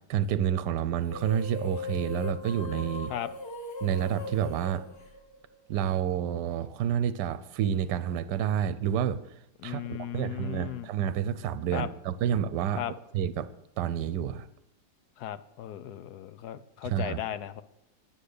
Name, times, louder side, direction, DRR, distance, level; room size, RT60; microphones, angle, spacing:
voice 1, 0.1-3.1 3.8-4.8 5.7-9.2 9.6-12.8 13.1-13.5 13.8-14.5 16.8-17.2, right 9 dB, 70° right, 14 dB, 1.2 m, -29 dB
sound 1, 1.0-5.7, left 3 dB, 35° left, 1.8 m, -39 dB
voice 2, 9.6-10.9 11.7-11.9 12.8-12.9 15.2-17.6, left 11 dB, 70° left, 14 dB, 1.0 m, -36 dB
11.0 x 9.8 x 6.6 m, 0.82 s
omnidirectional pair, 2.0 m